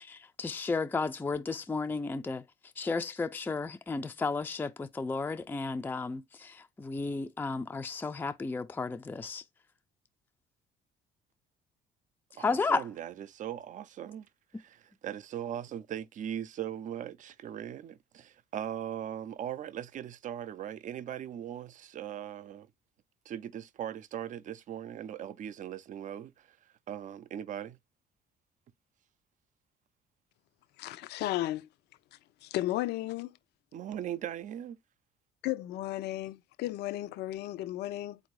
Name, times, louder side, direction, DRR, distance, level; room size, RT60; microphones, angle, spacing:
voice 1, 0.0-2.4 2.8-9.4 12.4-12.8, left 4 dB, 10° left, 0.4 m, -33 dB
voice 2, 12.4-14.3 14.5-22.7 23.3-26.6 26.9-27.8 33.7-34.8, right 10 dB, 50° right, 0.5 m, -39 dB
voice 3, 30.8-31.7 32.4-33.3 35.4-38.2, left 15 dB, 75° left, 0.5 m, -34 dB
4.0 x 2.6 x 4.6 m
cardioid pair, 110°, 17 cm